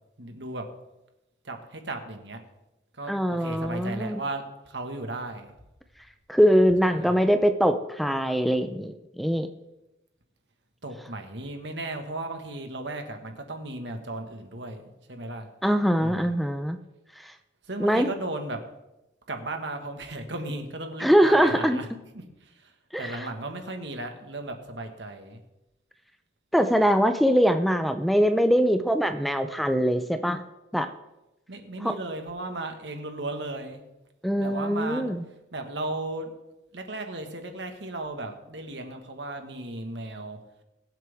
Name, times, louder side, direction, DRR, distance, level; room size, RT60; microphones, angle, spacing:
voice 1, 0.2-0.6 1.4-2.4 3.0-5.5 6.9-7.2 10.8-14.8 15.1-15.5 16.0-16.3 17.7-18.6 19.3-21.9 22.6-22.7 23.0-25.4 31.5-33.8 34.4-35.0 35.5-36.3 36.7-40.4, right 2 dB, 80° right, 5 dB, 1.7 m, -35 dB
voice 2, 3.1-4.2 6.3-9.5 15.6-16.8 17.8-18.1 21.0-21.8 22.9-23.3 26.5-30.4 30.7-30.9 31.8-31.9 34.2-35.2, equal, ahead, 8 dB, 0.6 m, -22 dB
22.5 x 7.7 x 3.6 m, 0.96 s
head